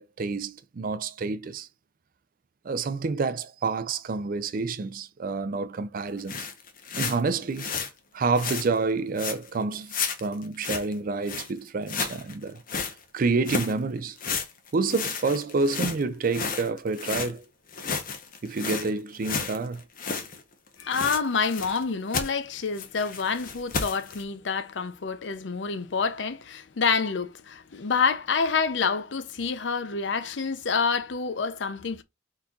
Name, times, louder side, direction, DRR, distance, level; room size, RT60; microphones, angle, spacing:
voice 1, 0.0-1.7 2.6-6.5 7.0-7.7 8.1-9.9 10.2-12.6 13.1-14.2 14.7-17.4 18.4-19.8, right 4 dB, 50° right, 0.4 m, -28 dB
sound 1, 6.2-7.9 8.4-8.7 9.2-9.5 9.9-10.9 11.3-11.5 11.9-12.9 13.5-13.7 14.2-17.3 17.7-20.4 20.7-21.8 22.1-22.3 22.8-24.2, left 5 dB, 50° left, 1.0 m, -32 dB
voice 2, 20.8-32.0, left 5 dB, 75° left, 0.6 m, -27 dB
4.3 x 4.1 x 2.4 m
head